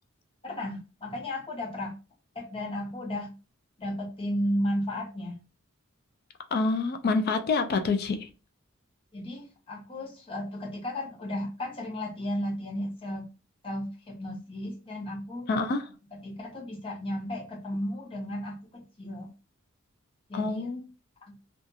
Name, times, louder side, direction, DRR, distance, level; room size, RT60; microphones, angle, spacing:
voice 1, 0.4-2.0 2.3-3.3 3.8-5.4 9.1-13.2 13.6-15.5 16.1-19.3 20.3-20.7 21.3-21.4, left 1 dB, 25° left, 0.7 m, -34 dB
voice 2, 6.5-8.2 15.5-15.8 20.3-20.8, left 3 dB, 45° left, 0.3 m, -26 dB
2.7 x 2.4 x 2.3 m
head